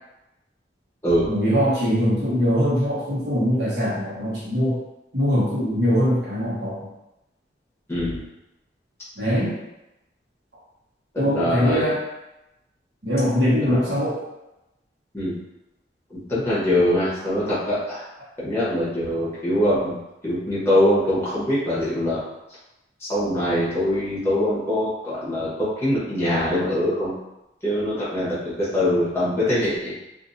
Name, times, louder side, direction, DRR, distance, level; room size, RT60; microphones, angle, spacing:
voice 1, 1.3-4.8 5.1-6.9 9.2-9.6 11.2-12.0 13.0-14.2, equal, 70° right, -8 dB, 1.2 m, -22 dB
voice 2, 7.9-8.2 11.1-11.8 13.6-13.8 15.1-15.4 16.1-18.0 18.4-20.0 20.2-22.2 23.1-27.2 27.6-29.9, left 1 dB, 15° left, -10 dB, 1.0 m, -23 dB
2.7 x 2.6 x 2.6 m, 0.94 s
head